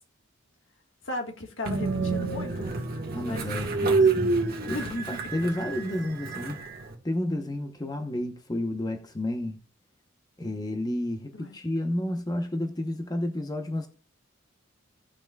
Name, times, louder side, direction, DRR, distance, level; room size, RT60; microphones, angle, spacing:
voice 1, 1.0-2.8 3.2-3.5 4.6-5.3 11.4-11.5, left 2 dB, 65° left, 1.7 m, -36 dB
Train, 1.7-6.9, right 3 dB, 45° right, 1.6 m, -28 dB
voice 2, 3.1-4.3 4.7-4.8 5.1-6.6 7.0-9.6 10.4-13.9, left 1 dB, 20° left, 0.9 m, -31 dB
17.5 x 5.9 x 2.3 m
head